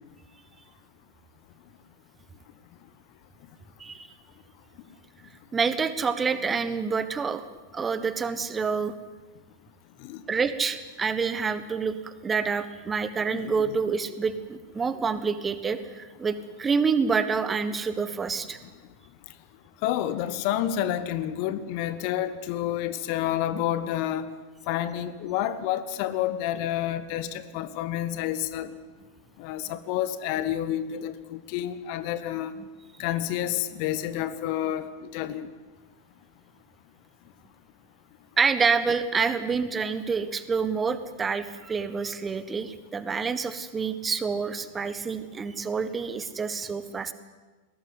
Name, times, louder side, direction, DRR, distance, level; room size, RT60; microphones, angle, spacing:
voice 1, 3.8-4.1 5.5-7.4 7.7-8.9 10.3-18.6 38.4-47.1, right 5 dB, 15° right, 12 dB, 1.4 m, -27 dB
voice 2, 13.3-13.6 19.8-24.3 24.7-28.7 29.4-32.5 33.0-35.5, left 11 dB, 45° left, 14 dB, 1.2 m, -29 dB
21.5 x 18.0 x 9.8 m, 1.2 s
figure-of-eight pair, 90°, 0 cm